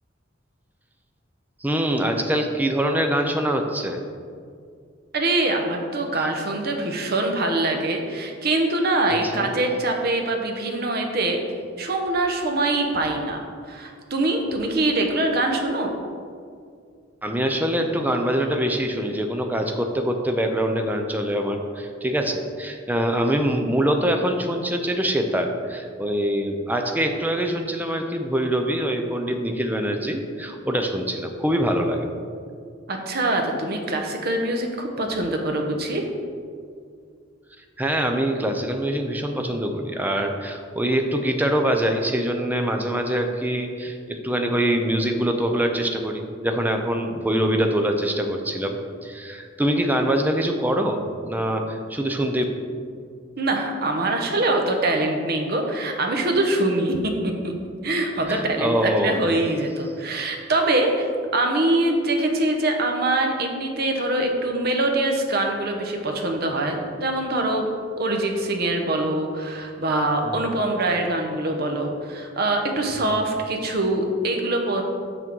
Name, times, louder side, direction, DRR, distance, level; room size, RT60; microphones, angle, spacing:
voice 1, 1.6-4.0 6.1-6.2 9.2-9.5 17.2-32.1 37.8-52.4 58.3-59.2 70.2-70.5 72.9-73.2, right 1 dB, 10° right, 4 dB, 0.5 m, -24 dB
voice 2, 5.1-11.4 11.8-13.4 13.7-15.9 32.9-36.0 53.4-57.5 57.8-67.7 68.0-74.8, right 2 dB, 55° right, 3 dB, 0.9 m, -24 dB
6.8 x 6.1 x 4.5 m, 2.2 s
head